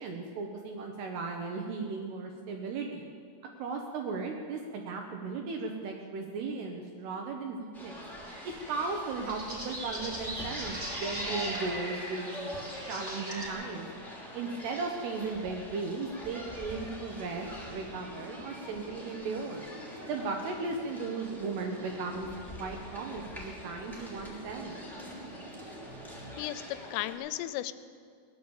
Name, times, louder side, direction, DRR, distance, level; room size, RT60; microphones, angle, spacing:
voice 1, 0.0-3.1 3.6-8.0 8.7-12.5 12.9-13.9 14.3-19.6 20.0-22.3 22.6-24.8, right 4 dB, 75° right, 2 dB, 2.5 m, -36 dB
sound 1, 7.7-27.1, equal, ahead, 1.4 m, -44 dB
sound 2, 8.2-13.5, right 1 dB, 25° right, 2.0 m, -41 dB
sound 3, 17.7-26.4, right 1 dB, 50° right, 1.6 m, -49 dB
voice 2, 26.4-27.7, left 14 dB, 85° left, 13 dB, 3.2 m, -35 dB
19.0 x 10.5 x 7.2 m, 2.1 s
omnidirectional pair, 5.9 m